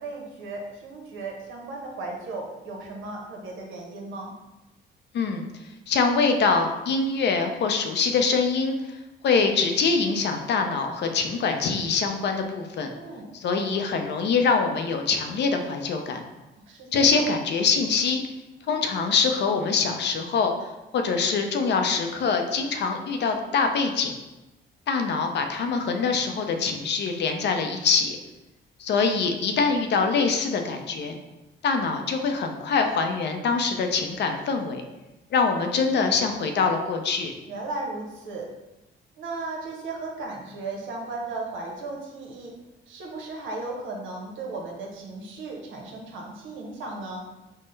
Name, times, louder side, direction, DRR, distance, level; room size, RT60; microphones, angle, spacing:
voice 1, 0.0-4.3 12.9-13.3 16.6-17.3 37.5-38.5 39.2-42.5 42.9-47.2, right 3 dB, 80° right, -1 dB, 0.8 m, -36 dB
voice 2, 5.1-5.4 5.9-8.8 9.2-12.9 13.3-16.2 16.9-18.2 18.7-20.5 20.9-24.2 24.9-28.2 28.8-31.2 31.6-34.8 35.3-37.3, left 5 dB, 60° left, 5 dB, 0.5 m, -24 dB
3.7 x 2.1 x 3.9 m, 1.0 s
cardioid pair, 90°, 20 cm